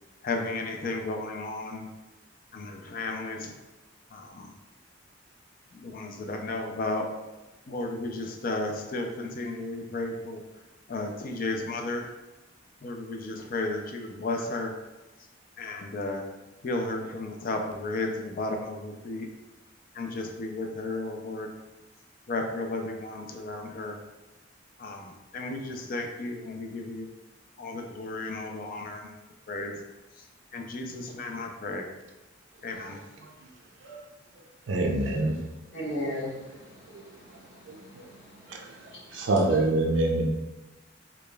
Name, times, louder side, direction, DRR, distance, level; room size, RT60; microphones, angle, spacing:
voice 1, 0.2-1.8 2.5-3.5 4.1-4.5 5.7-7.1 7.7-10.4 10.9-12.1 12.8-14.7 15.6-16.2 16.6-19.3 19.9-21.5 22.3-24.0 24.8-27.1 27.6-29.1 29.5-29.7 30.5-31.9 32.6-33.0, left 2 dB, 45° left, 3 dB, 0.4 m, -33 dB
voice 2, 34.7-35.4 38.5-38.6 39.1-40.3, right 2 dB, 70° right, 1 dB, 0.4 m, -25 dB
voice 3, 35.7-39.3, left 1 dB, 65° left, -5 dB, 1.1 m, -38 dB
4.9 x 2.3 x 2.2 m, 1.1 s
head